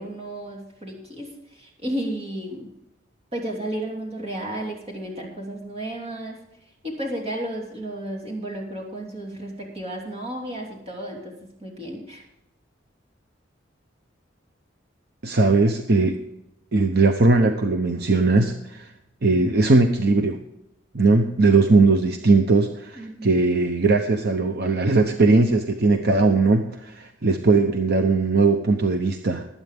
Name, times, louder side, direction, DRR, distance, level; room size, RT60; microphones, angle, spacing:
voice 1, 0.0-2.7 3.3-6.4 6.8-11.3 11.6-12.2 23.0-23.6, right 1 dB, 30° right, 0 dB, 2.9 m, -33 dB
voice 2, 15.2-16.2 16.7-18.9 19.2-20.4 20.9-29.5, right 3 dB, 55° right, 5 dB, 0.9 m, -19 dB
20.0 x 8.8 x 3.6 m, 0.85 s
head